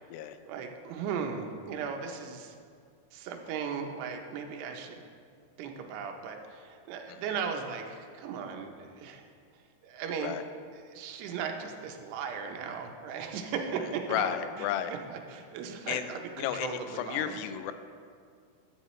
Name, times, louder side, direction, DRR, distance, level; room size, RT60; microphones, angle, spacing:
voice 1, 0.5-2.6 3.1-5.0 5.6-9.3 9.8-10.3 10.9-17.4, right 6 dB, 85° right, 4 dB, 2.9 m, -37 dB
voice 2, 14.1-14.9 15.9-16.1 16.4-17.7, left 10 dB, 90° left, 10 dB, 2.7 m, -32 dB
13.0 x 8.6 x 3.1 m, 2.2 s
omnidirectional pair, 4.7 m